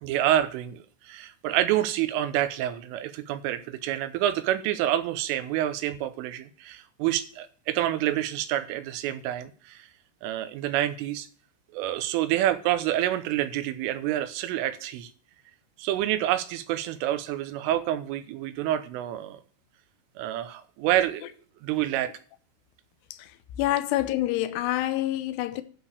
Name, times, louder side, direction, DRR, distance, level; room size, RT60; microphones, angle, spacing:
voice 1, 0.0-9.9 10.2-11.3 11.7-15.1 15.8-19.4 20.2-21.3 21.6-22.1, right 12 dB, 85° right, 3.4 m, -28 dB
voice 2, 23.6-25.6, left 15 dB, 80° left, 2.5 m, -27 dB
11.5 x 4.9 x 6.7 m
omnidirectional pair, 5.6 m